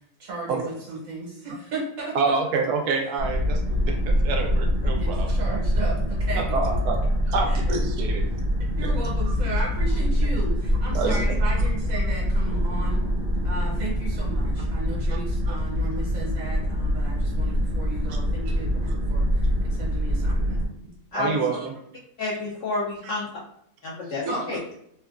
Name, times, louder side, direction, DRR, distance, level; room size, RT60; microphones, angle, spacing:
voice 1, 0.2-2.2 5.0-6.4 7.5-7.6 8.8-13.0 13.4-20.6 24.3-24.5, right 3 dB, 65° right, -4 dB, 1.3 m, -35 dB
voice 2, 2.1-5.3 6.3-7.0 7.3-8.3 8.8-8.9 9.3-9.4 10.9-11.3 15.5-15.6 21.1-21.7 23.0-23.1 24.3-24.4, right 4 dB, 90° right, 3 dB, 1.1 m, -27 dB
sound 1, 3.2-20.7, equal, 45° right, 0.8 m, -24 dB
voice 3, 22.2-23.3 23.8-24.6, left 3 dB, 65° left, -6 dB, 0.8 m, -29 dB
3.3 x 2.2 x 2.4 m, 0.72 s
omnidirectional pair, 1.6 m